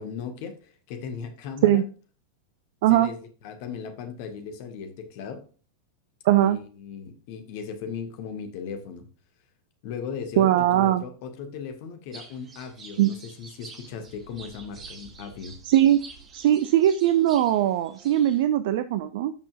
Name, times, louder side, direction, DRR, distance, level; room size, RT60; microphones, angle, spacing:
voice 1, 0.0-1.8 2.9-5.4 6.4-9.1 9.8-15.6, left 6 dB, 50° left, 7 dB, 1.8 m, -37 dB
voice 2, 6.2-6.6 10.4-11.0 13.0-13.1 15.7-16.0 16.3-19.3, right 12 dB, 50° right, 12 dB, 0.5 m, -20 dB
sound 1, 12.1-18.4, right 4 dB, 25° right, 2.2 m, -47 dB
13.0 x 6.1 x 2.5 m, 0.37 s
figure-of-eight pair, 90°, 0 cm